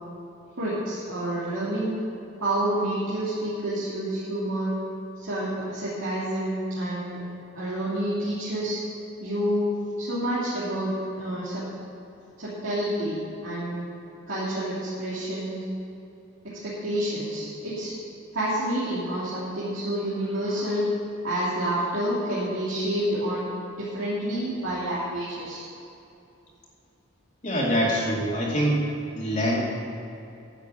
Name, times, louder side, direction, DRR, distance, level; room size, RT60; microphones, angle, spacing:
voice 1, 0.6-1.9 2.4-4.7 5.2-7.2 7.5-8.8 9.2-9.7 10.0-10.9 11.2-11.6 12.4-13.2 13.4-13.8 14.3-15.6 16.4-17.9 18.3-20.9 21.2-25.6, right 1 dB, 85° right, -10 dB, 2.9 m, -28 dB
voice 2, 27.4-28.8 29.2-29.6, equal, 40° left, -5 dB, 2.4 m, -24 dB
10.5 x 7.4 x 8.7 m, 2.8 s
head